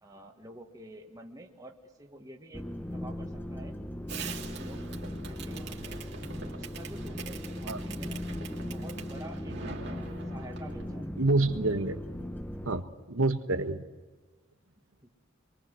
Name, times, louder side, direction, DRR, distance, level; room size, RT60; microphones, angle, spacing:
voice 1, 0.0-3.8 4.3-4.9 5.2-6.0 6.3-11.1 15.0-15.1, right 1 dB, 15° right, 2 dB, 1.7 m, -49 dB
sound 1, 2.5-12.8, left 1 dB, 10° left, 0.8 m, -38 dB
Fireworks, 4.1-10.9, right 5 dB, 55° right, 2.7 m, -44 dB
voice 2, 11.2-12.0 12.6-13.8, right 2 dB, 80° right, 9 dB, 1.4 m, -27 dB
26.0 x 23.5 x 7.7 m, 1.3 s
head